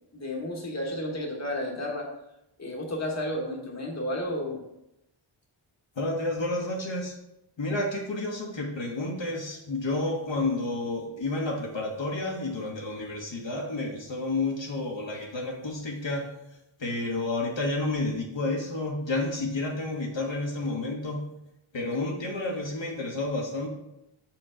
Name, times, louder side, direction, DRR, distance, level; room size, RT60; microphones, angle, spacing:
voice 1, 0.1-2.1 2.6-4.6, left 1 dB, 30° left, -1 dB, 1.2 m, -32 dB
voice 2, 6.0-7.2 7.6-16.3 16.8-21.3 21.7-23.7, left 2 dB, 60° left, -1 dB, 1.2 m, -30 dB
6.6 x 4.5 x 3.8 m, 0.85 s
wide cardioid pair, 90°, 50 cm